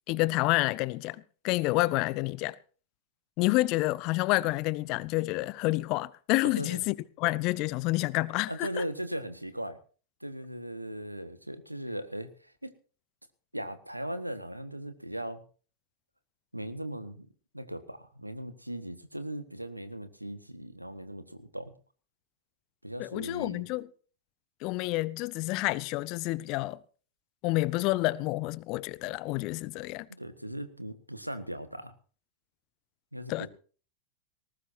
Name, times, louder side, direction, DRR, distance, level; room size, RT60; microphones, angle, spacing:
voice 1, 0.1-2.5 3.4-8.8 23.0-23.9 24.6-26.8 27.4-30.1 33.3-33.5, left 20 dB, 40° left, 0.7 m, -29 dB
voice 2, 8.5-9.8 10.2-12.7 13.5-15.4 16.5-17.3 17.5-21.7 22.8-23.6 30.1-31.9 33.1-33.5, right 1 dB, 90° right, 1.5 m, -38 dB
19.5 x 18.5 x 2.7 m
figure-of-eight pair, 90°, 0 cm